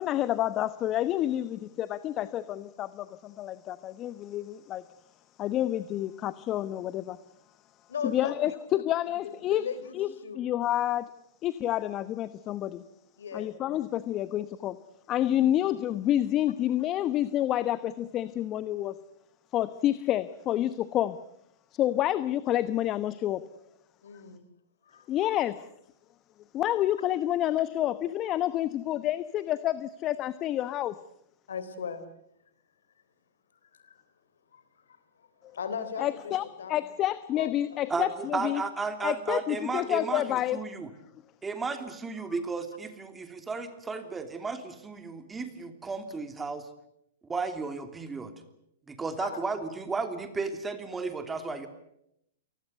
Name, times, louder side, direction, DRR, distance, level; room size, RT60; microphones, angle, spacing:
voice 1, 0.0-4.8 5.4-7.2 8.0-9.6 9.9-10.1 10.3-11.1 11.4-12.8 13.3-14.8 15.1-19.0 19.5-21.2 21.7-23.5 25.1-25.7 26.5-31.0 36.0-36.4 36.7-38.6 39.0-40.6, left 13 dB, 30° left, 15 dB, 1.0 m, -28 dB
voice 2, 7.9-8.6 9.2-10.0 10.2-10.4 13.2-13.5 15.2-15.5 24.0-24.4 24.9-25.3 31.5-32.0 33.7-34.0 34.5-34.6 34.9-35.3 35.5-36.3 36.6-36.8 37.4-37.5 49.2-49.4, left 6 dB, 75° left, 13 dB, 3.6 m, -38 dB
voice 3, 37.9-40.9 41.4-46.7 47.3-48.3 48.9-51.7, right 4 dB, 15° right, 8 dB, 3.0 m, -34 dB
29.0 x 19.5 x 8.1 m, 0.77 s
hypercardioid pair, 115°, 0 cm